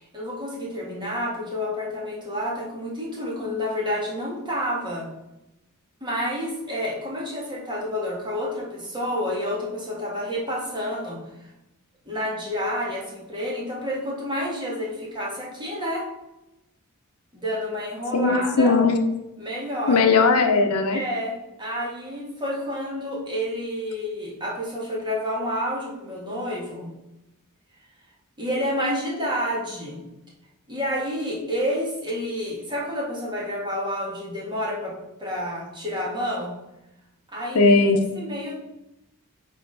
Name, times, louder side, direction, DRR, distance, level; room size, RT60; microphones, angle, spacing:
voice 1, 0.1-5.1 6.0-11.5 12.0-16.0 17.3-18.8 19.4-20.0 20.9-26.9 28.4-30.0 30.7-34.9 35.2-36.5 37.3-37.7 38.1-38.6, equal, 20° right, -3 dB, 1.7 m, -29 dB
voice 2, 18.1-19.0 19.9-21.0 37.5-38.0, left 3 dB, 75° left, 6 dB, 0.7 m, -18 dB
5.6 x 3.8 x 5.3 m, 0.94 s
head